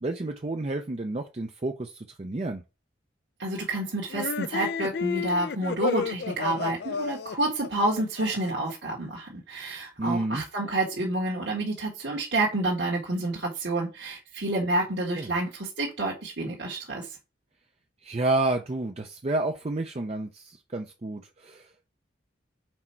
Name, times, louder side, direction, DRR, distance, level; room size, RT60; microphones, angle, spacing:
voice 1, 0.0-2.6 10.0-10.4 15.2-15.4 18.0-21.7, right 2 dB, 30° right, 0.5 m, -30 dB
voice 2, 3.4-17.1, right 2 dB, 65° right, 1.6 m, -29 dB
sound 1, 4.1-8.7, left 5 dB, 55° left, 0.4 m, -32 dB
6.0 x 4.4 x 4.4 m
head